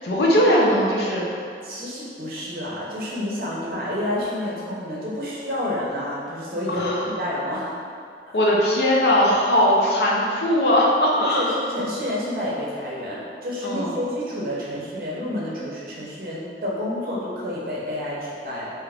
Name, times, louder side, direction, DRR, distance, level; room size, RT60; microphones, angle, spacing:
voice 1, 0.0-1.3 6.7-7.1 8.3-11.5 13.6-13.9, equal, 70° left, -4 dB, 0.5 m, -19 dB
voice 2, 1.6-7.7 9.2-9.3 11.1-18.7, left 1 dB, 55° right, -5 dB, 0.6 m, -29 dB
3.3 x 2.9 x 2.4 m, 2.3 s
head